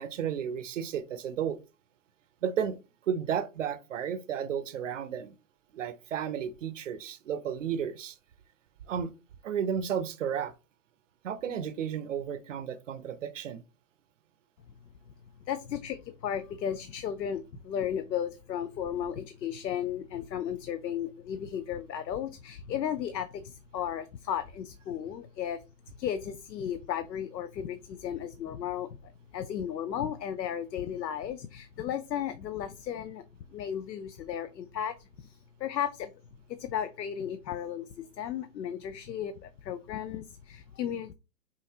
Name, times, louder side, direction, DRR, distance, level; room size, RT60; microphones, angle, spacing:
voice 1, 0.0-1.6 2.4-2.8 3.0-5.4 5.7-8.2 8.9-9.1 9.4-10.5 11.2-13.6, right 8 dB, 50° right, 0.6 m, -33 dB
voice 2, 15.5-33.2 33.5-36.1 36.5-41.1, left 9 dB, 85° left, 0.7 m, -35 dB
5.6 x 2.6 x 2.8 m
hypercardioid pair, 155°, 49 cm